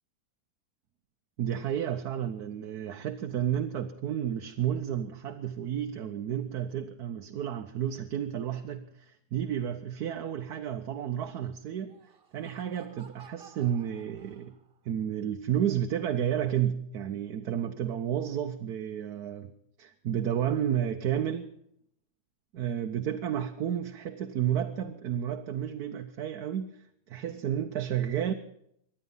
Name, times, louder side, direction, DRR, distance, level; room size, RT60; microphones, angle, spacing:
voice 1, 1.4-12.0 12.3-14.5 14.8-19.5 19.8-21.5 22.5-28.3, right 10 dB, 85° right, 5 dB, 1.4 m, -31 dB
Laughter, 11.8-14.9, right 6 dB, 40° right, 1.7 m, -55 dB
23.5 x 10.0 x 5.5 m, 0.72 s
omnidirectional pair, 1.6 m